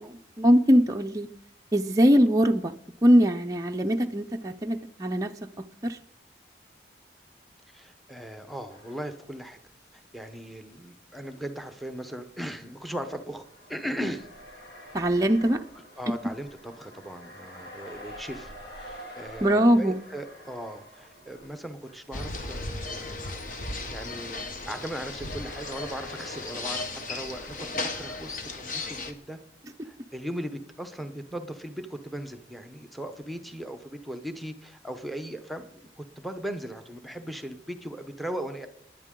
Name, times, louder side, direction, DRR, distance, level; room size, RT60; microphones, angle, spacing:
voice 1, 0.4-1.3 1.7-2.7 3.0-5.3 5.8-6.0 14.9-15.6 19.4-20.0, equal, 20° right, 3 dB, 0.5 m, -21 dB
voice 2, 7.7-9.6 9.9-13.4 13.7-14.3 16.0-23.3 23.8-26.8 27.1-29.4 29.8-38.7, equal, ahead, 8 dB, 0.8 m, -38 dB
sound 1, 8.7-9.8 10.1-10.2 11.2-28.5, equal, 65° left, 3.2 m, -49 dB
sound 2, 22.1-29.1, left 3 dB, 45° left, 1.2 m, -35 dB
19.5 x 10.5 x 3.8 m, 0.74 s
head